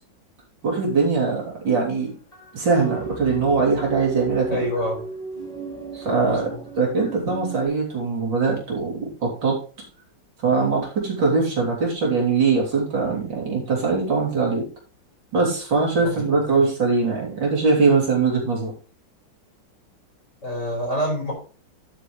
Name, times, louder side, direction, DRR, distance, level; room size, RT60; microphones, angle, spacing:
sound 1, 0.6-0.9 1.6-1.7 2.0-2.1 2.3-7.7, right 3 dB, 20° left, 5.6 m, -35 dB
voice 1, 0.6-2.1 2.5-4.5 5.9-6.5 6.8-9.6 10.4-14.6 15.3-18.7, right 4 dB, 80° right, -2 dB, 4.2 m, -21 dB
voice 2, 4.5-5.0 6.2-6.6 16.0-16.7 20.4-21.3, equal, 40° left, -1 dB, 5.5 m, -27 dB
11.5 x 8.4 x 3.3 m, 0.37 s
omnidirectional pair, 2.0 m